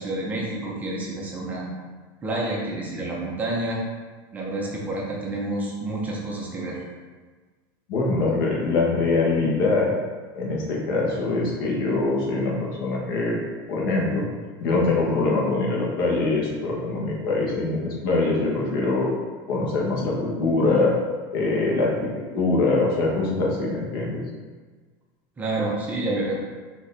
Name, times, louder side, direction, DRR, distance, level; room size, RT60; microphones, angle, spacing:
voice 1, 0.0-1.7 2.2-3.8 4.3-6.8 25.4-26.3, right 2 dB, 15° right, -3 dB, 0.5 m, -29 dB
voice 2, 7.9-9.9 10.3-13.4 13.7-14.2 14.6-19.1 19.5-20.9 21.3-24.2, left 3 dB, 85° left, -3 dB, 1.1 m, -23 dB
4.3 x 2.8 x 3.3 m, 1.4 s
cardioid pair, 180°, 12 cm